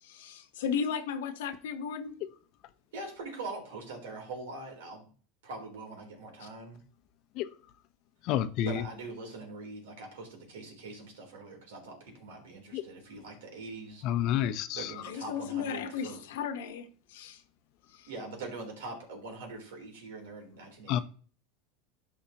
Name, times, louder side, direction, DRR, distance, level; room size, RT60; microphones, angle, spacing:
voice 1, 0.0-2.2 15.0-17.4 17.9-18.1, left 7 dB, 85° left, 1.1 m, -35 dB
voice 2, 2.9-5.1 5.4-6.8 8.6-14.0 14.7-16.2 18.1-21.0, right 3 dB, 90° right, 3.5 m, -43 dB
voice 3, 8.3-8.8 12.7-12.8 14.0-14.9 20.9-21.0, left 11 dB, 50° left, 0.7 m, -29 dB
12.5 x 5.0 x 2.9 m
supercardioid pair, 140°, 0 cm